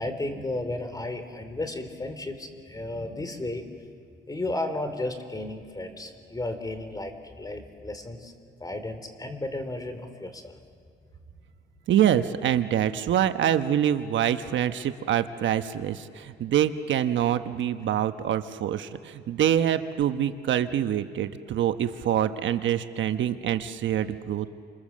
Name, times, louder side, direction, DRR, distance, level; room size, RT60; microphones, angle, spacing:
voice 1, 0.0-3.7 4.2-8.3 8.6-10.6, left 2 dB, 20° left, 8 dB, 3.4 m, -33 dB
voice 2, 11.9-24.5, right 10 dB, 70° right, 9 dB, 1.1 m, -25 dB
28.5 x 26.5 x 7.5 m, 2.2 s
cardioid pair, 90°, 20 cm